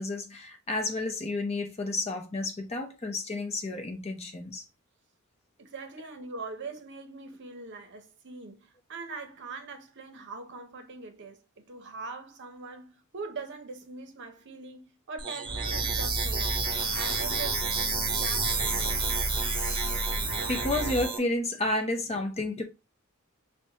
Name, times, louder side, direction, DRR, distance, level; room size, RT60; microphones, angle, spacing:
voice 1, 0.0-4.6 20.5-22.6, left 2 dB, 30° left, 0.7 m, -31 dB
voice 2, 5.6-16.7 16.9-17.9 18.2-19.0, right 4 dB, 55° right, 0.7 m, -42 dB
sound 1, 15.2-21.2, right 5 dB, 25° right, 0.8 m, -30 dB
sound 2, 15.4-21.0, equal, 80° left, 0.9 m, -34 dB
5.8 x 2.2 x 2.8 m
head